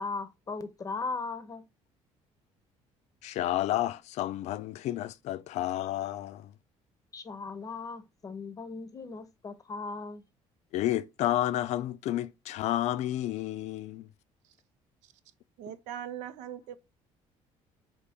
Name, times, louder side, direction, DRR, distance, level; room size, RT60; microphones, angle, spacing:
voice 1, 0.0-1.6 7.1-10.2, left 4 dB, 30° left, 0.7 m, -38 dB
voice 2, 3.2-6.5 10.7-14.1, left 13 dB, 65° left, 0.4 m, -31 dB
voice 3, 15.6-16.8, right 10 dB, 80° right, 0.6 m, -40 dB
4.2 x 3.1 x 3.5 m
cardioid pair, 110°, 12 cm